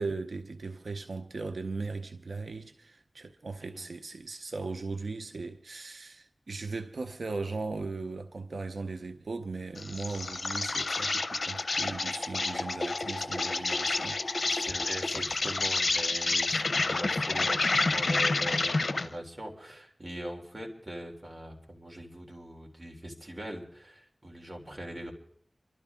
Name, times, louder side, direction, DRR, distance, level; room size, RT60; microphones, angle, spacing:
voice 1, 0.0-14.5, right 3 dB, 90° right, 0.7 m, -38 dB
Insect, 9.8-19.1, left 3 dB, 75° left, 0.7 m, -29 dB
voice 2, 14.5-25.1, equal, 35° right, 3.2 m, -41 dB
28.0 x 12.5 x 3.6 m
wide cardioid pair, 55°, 0 cm